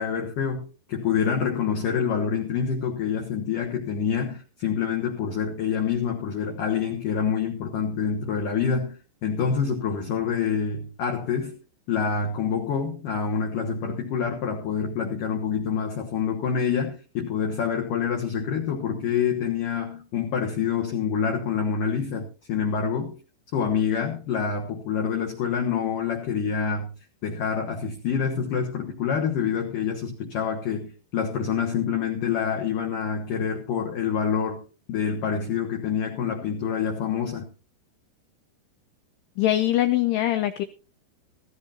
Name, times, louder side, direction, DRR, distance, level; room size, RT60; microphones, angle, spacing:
voice 1, 0.0-11.6 11.9-23.2 23.5-26.9 27.2-34.6 34.9-37.5, left 7 dB, 65° left, 2.2 m, -27 dB
voice 2, 39.4-40.7, left 14 dB, 80° left, 2.4 m, -22 dB
16.0 x 15.0 x 2.9 m
omnidirectional pair, 5.6 m